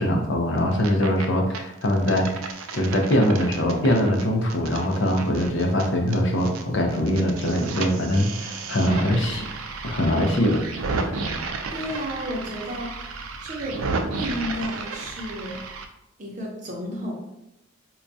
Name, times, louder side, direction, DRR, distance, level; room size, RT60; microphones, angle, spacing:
voice 1, 0.0-2.5 2.7-9.5 9.8-11.0, equal, 60° left, 3 dB, 0.6 m, -22 dB
sound 1, 0.6-1.2 1.5-6.6 6.9-15.8, right 4 dB, 80° right, 0.4 m, -33 dB
voice 2, 11.7-13.0 13.4-13.8 14.1-15.6 16.2-17.1, equal, 35° right, -2 dB, 0.7 m, -32 dB
4.3 x 2.3 x 2.6 m, 0.87 s
head